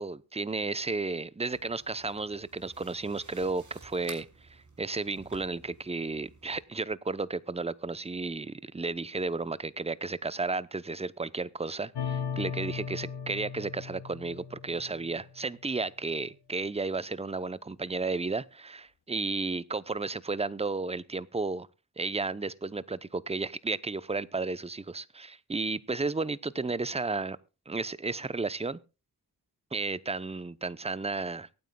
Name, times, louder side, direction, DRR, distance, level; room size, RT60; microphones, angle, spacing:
voice 1, 0.0-21.7 22.0-27.4 27.7-28.8 29.7-31.5, right 3 dB, 15° right, 0.7 m, -33 dB
sound 1, 1.5-6.6, right 3 dB, 50° right, 3.1 m, -53 dB
sound 2, 11.9-15.4, left 7 dB, 90° left, 1.2 m, -37 dB
23.5 x 9.3 x 2.3 m
cardioid pair, 60°, 39 cm